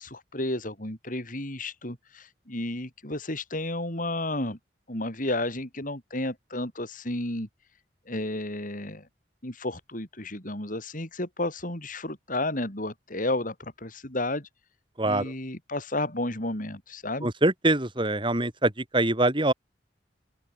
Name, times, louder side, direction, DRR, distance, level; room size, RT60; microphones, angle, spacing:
voice 1, 0.0-4.6 4.9-7.5 8.1-9.1 9.4-14.5 15.0-17.3, left 1 dB, 45° left, 6.0 m, -32 dB
voice 2, 15.0-15.3 17.2-19.5, right 2 dB, 25° right, 4.2 m, -24 dB
open air
head